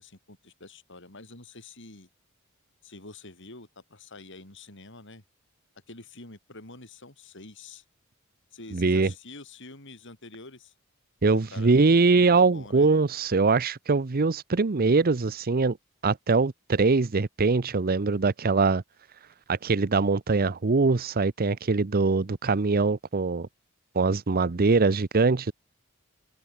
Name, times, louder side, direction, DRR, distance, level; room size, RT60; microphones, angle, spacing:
voice 1, 0.0-2.1 2.8-5.2 5.9-7.8 8.5-10.7 11.3-11.7 12.1-12.9, left 3 dB, 60° left, 6.8 m, -46 dB
voice 2, 8.7-9.1 11.2-15.8 16.0-18.8 19.5-23.5 23.9-25.5, right 4 dB, 45° right, 0.7 m, -22 dB
open air
head